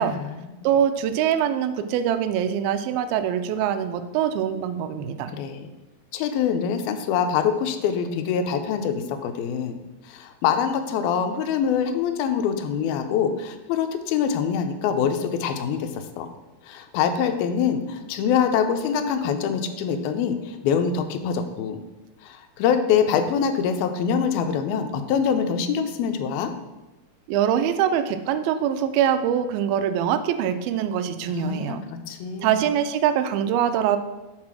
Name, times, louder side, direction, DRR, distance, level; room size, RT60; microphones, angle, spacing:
voice 1, 0.0-0.7 5.3-5.7 6.1-9.8 10.0-16.3 16.6-21.8 22.2-26.5 31.3-31.8 32.1-32.6, left 7 dB, 85° left, 8 dB, 2.4 m, -24 dB
voice 2, 0.6-5.3 27.3-31.8 32.4-34.0, right 9 dB, 80° right, 10 dB, 2.3 m, -23 dB
7.5 x 4.0 x 6.0 m, 1.1 s
omnidirectional pair, 4.3 m